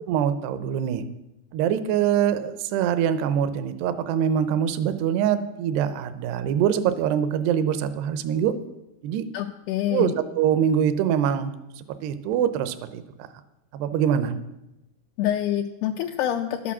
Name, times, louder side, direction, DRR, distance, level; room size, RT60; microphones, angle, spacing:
voice 1, 0.1-1.0 1.5-8.6 9.0-9.3 9.9-13.0 13.7-14.4, right 9 dB, 80° right, 11 dB, 2.7 m, -24 dB
voice 2, 9.3-10.1 15.2-16.7, left 11 dB, 80° left, 3 dB, 2.4 m, -26 dB
11.5 x 8.5 x 7.2 m, 0.94 s
omnidirectional pair, 5.0 m